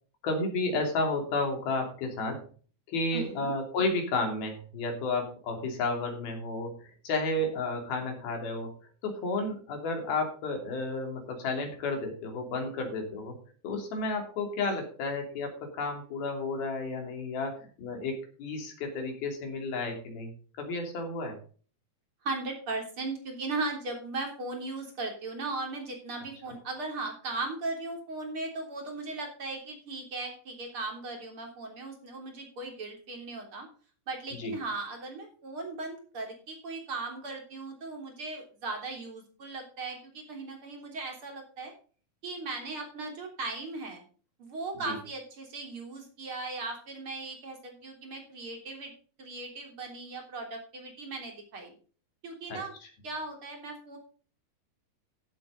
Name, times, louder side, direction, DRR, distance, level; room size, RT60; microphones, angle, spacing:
voice 1, 0.2-2.5 2.9-8.7 9.0-13.4 13.6-20.3 20.6-21.4 34.3-34.5 44.7-45.0 52.5-52.6, left 2 dB, 60° left, 3 dB, 4.6 m, -32 dB
voice 2, 3.1-3.5 22.2-33.7 34.1-41.7 42.2-44.0 44.4-48.9 49.2-51.7 52.2-52.7 53.0-54.0, right 3 dB, 35° right, 2 dB, 3.8 m, -37 dB
15.0 x 8.1 x 3.9 m, 0.41 s
omnidirectional pair, 4.9 m